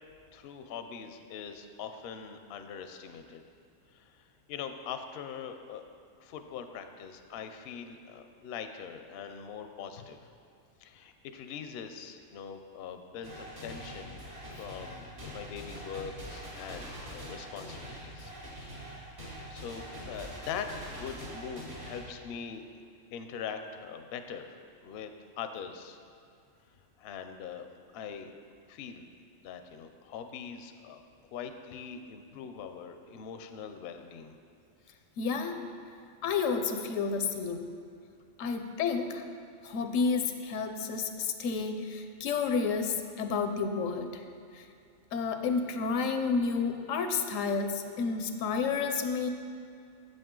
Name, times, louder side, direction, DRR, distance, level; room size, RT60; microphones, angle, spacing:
voice 1, 0.3-3.4 3.9-5.8 6.2-10.2 10.8-18.3 18.7-19.1 19.5-22.6 23.1-25.1 25.4-26.0 27.0-27.7 27.9-28.3 28.7-29.1 29.4-31.0 31.3-34.4, left 7 dB, 65° left, 7 dB, 0.7 m, -42 dB
sound 1, 13.2-22.0, equal, 65° right, 2.6 m, -44 dB
voice 2, 35.2-35.6 36.2-37.6 38.4-39.2 39.6-44.1 45.1-49.3, left 5 dB, 85° left, 6 dB, 1.0 m, -30 dB
7.8 x 7.5 x 3.7 m, 2.4 s
omnidirectional pair, 1.3 m